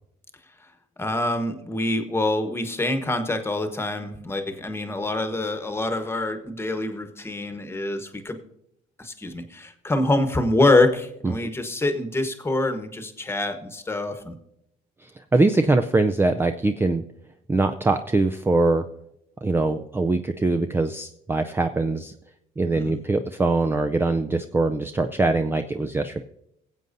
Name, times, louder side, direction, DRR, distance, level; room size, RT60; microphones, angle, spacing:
voice 1, 1.0-8.4 9.0-14.3 22.7-23.0, left 2 dB, 15° left, 7 dB, 1.1 m, -25 dB
voice 2, 15.3-17.0 17.5-18.8 19.4-22.1 22.6-26.2, right 3 dB, 15° right, 7 dB, 0.4 m, -22 dB
22.0 x 7.7 x 2.6 m, 0.80 s
cardioid pair, 110°, 17 cm